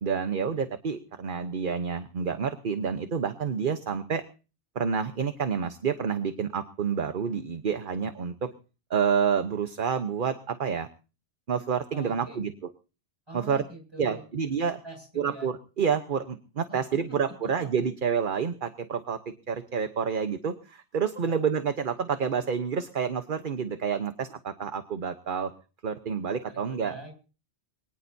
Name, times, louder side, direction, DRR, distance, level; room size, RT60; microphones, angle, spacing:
voice 1, 0.0-4.2 4.7-8.5 8.9-10.9 11.5-12.5 13.3-13.6 14.0-14.7 15.2-25.5 25.8-26.9, right 6 dB, 50° right, 9 dB, 1.1 m, -29 dB
voice 2, 11.9-12.5 13.3-14.3 14.6-15.5 16.7-17.2 17.6-17.7 21.1-21.4 26.5-27.1, right 1 dB, 25° right, 3 dB, 6.8 m, -44 dB
22.5 x 19.0 x 2.7 m, 0.35 s
omnidirectional pair, 1.1 m